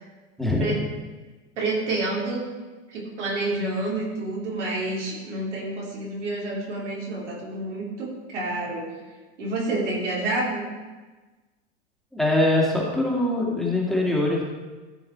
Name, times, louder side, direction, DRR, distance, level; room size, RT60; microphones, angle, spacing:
voice 1, 1.6-2.4 2.9-8.9 9.4-10.7, right 2 dB, 75° right, -4 dB, 3.5 m, -28 dB
voice 2, 12.1-14.4, left 1 dB, ahead, -4 dB, 2.3 m, -22 dB
14.5 x 5.6 x 4.5 m, 1.3 s
hypercardioid pair, 95°, 36 cm